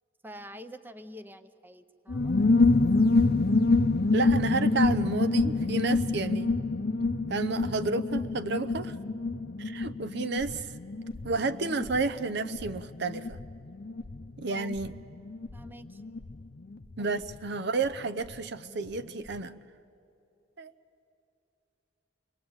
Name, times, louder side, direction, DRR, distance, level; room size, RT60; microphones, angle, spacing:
voice 1, 0.2-2.4 14.5-14.7 15.5-16.0 17.0-17.2, equal, 10° right, 11 dB, 0.7 m, -46 dB
sound 1, 2.1-18.4 18.6-18.7 18.9-19.4, left 3 dB, 50° left, 0.7 m, -27 dB
voice 2, 4.1-6.5 7.3-8.9 9.6-10.7 11.2-13.4 14.4-14.9 17.0-19.6 20.6-20.7, right 3 dB, 60° right, 11 dB, 0.7 m, -31 dB
28.5 x 22.0 x 8.9 m, 2.7 s
head